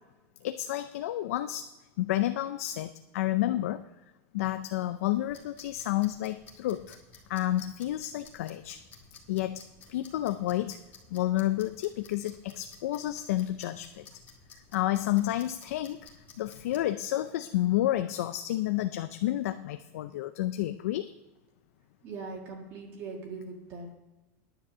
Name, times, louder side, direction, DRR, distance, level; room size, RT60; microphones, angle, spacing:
voice 1, 0.4-1.7 2.0-3.9 4.3-7.0 7.3-8.8 9.3-10.8 11.1-14.1 14.7-16.1 16.4-21.1, left 14 dB, 85° left, 10 dB, 0.5 m, -30 dB
sound 1, 5.1-16.9, left 4 dB, 25° left, 1.5 m, -55 dB
voice 2, 22.0-23.9, right 4 dB, 35° right, 1 dB, 1.7 m, -41 dB
10.0 x 6.9 x 7.3 m, 1.1 s
supercardioid pair, 180°, 8 cm